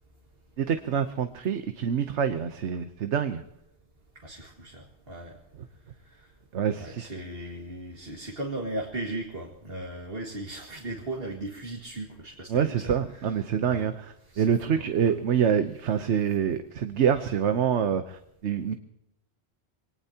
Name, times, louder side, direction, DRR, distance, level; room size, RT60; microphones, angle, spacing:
voice 1, 0.6-3.4 6.5-7.1 12.5-18.8, right 8 dB, 80° right, 9 dB, 1.2 m, -26 dB
voice 2, 4.2-5.4 6.2-6.3 6.8-12.9 13.7-13.9 14.3-14.9, right 1 dB, 55° right, 0 dB, 2.3 m, -37 dB
24.5 x 19.5 x 2.9 m, 0.83 s
omnidirectional pair, 1.2 m